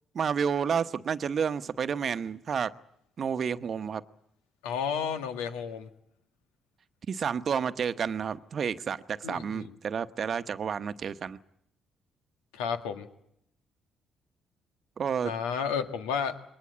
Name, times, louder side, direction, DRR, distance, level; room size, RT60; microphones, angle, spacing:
voice 1, 0.1-2.7 3.2-4.0 7.1-11.4 15.0-15.3, right 7 dB, 55° right, 1.0 m, -30 dB
voice 2, 4.6-5.9 9.2-9.8 12.5-13.1 15.2-16.4, left 7 dB, 85° left, 1.8 m, -32 dB
22.0 x 19.5 x 8.5 m
hypercardioid pair, 50°, 0 cm